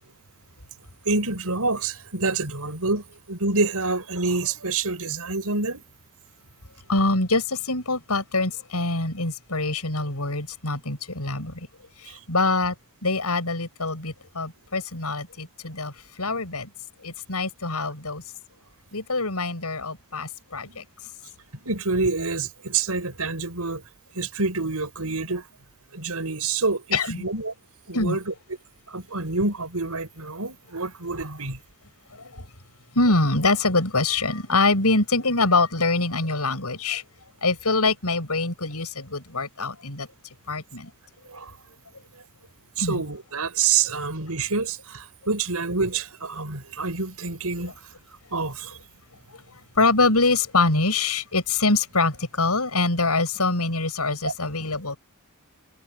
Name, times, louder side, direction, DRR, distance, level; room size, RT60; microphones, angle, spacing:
voice 1, 1.1-5.8 12.1-12.2 20.7-20.8 21.5-23.8 24.1-25.4 25.9-27.5 27.9-28.3 28.9-31.6 41.3-41.5 42.8-47.7 48.3-48.7 54.2-54.3, right 4 dB, 85° right, 5.9 m, -27 dB
voice 2, 6.9-11.5 12.0-12.7 13.0-15.9 16.2-16.7 17.0-18.2 18.9-20.8 26.9-27.2 27.9-28.2 32.1-32.4 32.9-37.0 37.4-40.1 40.5-40.9 42.8-43.0 49.8-55.0, left 3 dB, 90° left, 6.7 m, -24 dB
head